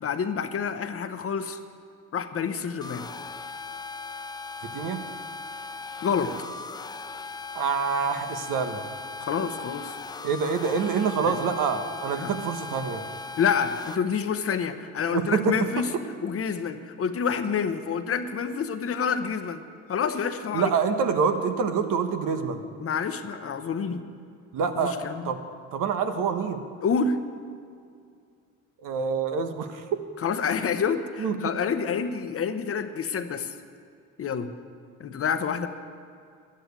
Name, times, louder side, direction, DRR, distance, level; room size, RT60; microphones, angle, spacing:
voice 1, 0.0-1.6 2.1-3.1 6.0-6.3 9.2-10.0 11.2-11.4 12.2-12.3 13.4-15.9 16.2-19.6 19.9-20.7 22.8-24.0 24.8-25.3 26.8-27.2 30.2-33.5 34.2-34.5 35.0-35.7, left 6 dB, 40° left, 9 dB, 0.9 m, -28 dB
sound 1, 2.8-14.0, left 4 dB, 15° left, 0.3 m, -38 dB
voice 2, 4.6-5.0 7.5-8.8 10.2-13.0 15.1-15.8 20.5-22.6 24.5-25.0 25.2-25.4 25.7-26.6 28.8-29.9 31.2-31.4, right 6 dB, 70° right, 7 dB, 1.2 m, -26 dB
12.0 x 9.0 x 8.2 m, 2.3 s
cardioid pair, 90°, 34 cm